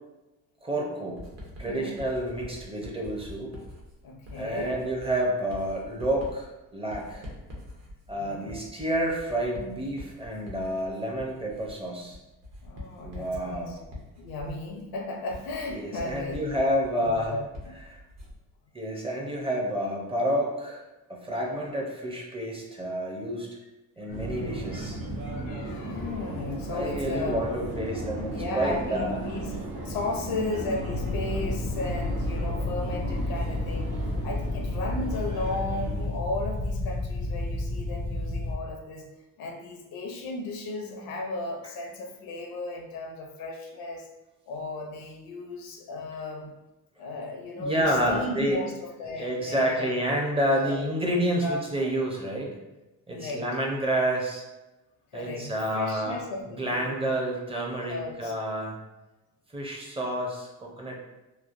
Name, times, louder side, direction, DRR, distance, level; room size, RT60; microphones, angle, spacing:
voice 1, 0.6-1.2 1.6-3.5 4.4-7.3 8.1-12.2 13.0-13.8 15.7-17.3 17.9-18.0 18.7-20.8 21.1-23.5 24.0-25.0 26.7-29.2 47.6-48.6 49.1-52.6 53.1-54.4 55.1-56.2 56.5-58.8 59.5-61.0, right 1 dB, 15° right, -1 dB, 0.6 m, -29 dB
Writing, 1.2-18.5, left 1 dB, 50° right, 0.9 m, -45 dB
voice 2, 1.6-2.0 3.5-3.6 4.0-4.8 8.1-8.6 12.6-13.8 14.2-16.5 17.0-17.7 24.0-24.4 24.7-24.8 25.2-27.4 28.3-29.6 29.8-39.1 39.4-44.1 44.5-46.5 47.0-49.9 50.4-51.9 53.1-53.4 55.1-57.1 57.8-58.3, left 2 dB, 90° left, 2 dB, 0.6 m, -35 dB
Subway metro underground, 24.1-36.0, right 1 dB, 85° right, 0.9 m, -36 dB
sound 1, 30.7-38.6, left 2 dB, 40° left, 0.4 m, -31 dB
3.1 x 2.2 x 2.5 m, 1.0 s
cardioid pair, 105°, 34 cm